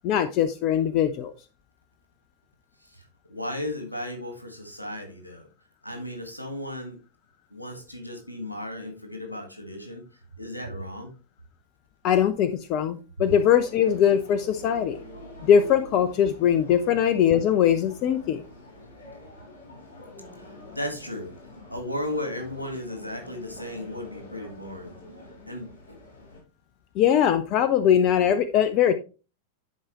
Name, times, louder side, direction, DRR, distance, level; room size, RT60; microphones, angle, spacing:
voice 1, 0.0-1.3 12.0-15.0 15.4-18.4 27.0-28.9, left 9 dB, 40° left, 0.6 m, -21 dB
voice 2, 2.9-5.5 5.8-7.0 7.5-10.0 10.4-11.1 20.4-21.3 21.7-24.9 25.5-26.0, left 1 dB, 85° left, 1.7 m, -35 dB
sound 1, 13.2-26.4, left 2 dB, 70° left, 3.8 m, -46 dB
11.0 x 4.7 x 3.0 m
figure-of-eight pair, 90°, 0 cm